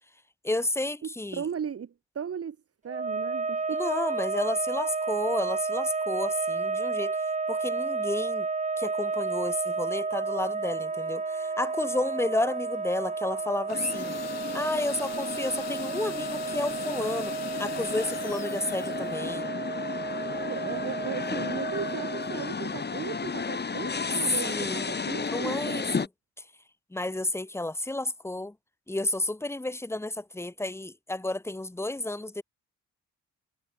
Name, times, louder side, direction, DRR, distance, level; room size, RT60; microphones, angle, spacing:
voice 1, 0.4-1.4 3.7-7.2 7.5-8.5 8.8-14.2 14.5-17.3 17.6-19.5 24.4-24.9 25.2-25.9 26.9-28.5 28.9-32.4, left 2 dB, 10° left, 1.5 m, -31 dB
voice 2, 1.0-2.6 2.8-3.9 20.4-25.9, right 7 dB, 50° right, 7.6 m, -36 dB
sound 1, 2.9-22.5, right 4 dB, 25° right, 2.3 m, -32 dB
sound 2, 13.7-19.3, left 10 dB, 60° left, 2.2 m, -43 dB
sound 3, 13.7-26.1, left 5 dB, 35° left, 7.3 m, -34 dB
cardioid pair, 90°, 30 cm